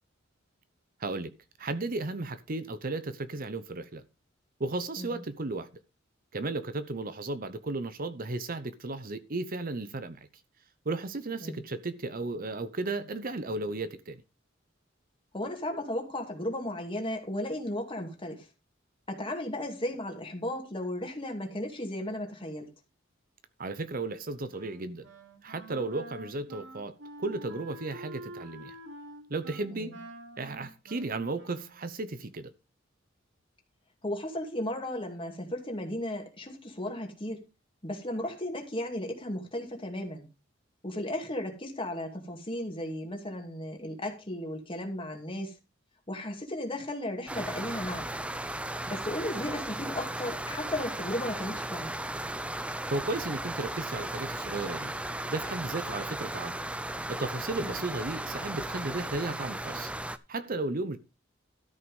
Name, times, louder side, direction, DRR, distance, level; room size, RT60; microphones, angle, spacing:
voice 1, 1.0-1.3 1.6-4.0 4.6-5.7 6.3-10.2 10.8-14.2 23.6-25.1 25.4-28.8 29.3-29.9 30.4-32.5 52.6-54.9 55.3-56.6 57.1-59.9 60.3-61.0, right 2 dB, 45° right, 0.9 m, -34 dB
voice 2, 15.3-18.5 19.1-22.7 29.7-30.0 34.0-37.4 37.8-40.3 40.8-45.5 46.1-48.1 48.9-51.9 57.6-57.9, left 1 dB, 25° left, 2.5 m, -35 dB
Wind instrument woodwind instrument, 24.5-32.0, right 1 dB, 75° right, 3.0 m, -47 dB
Rain with distant storms, 47.3-60.2, right 1 dB, 5° right, 0.6 m, -36 dB
13.0 x 5.7 x 5.4 m
head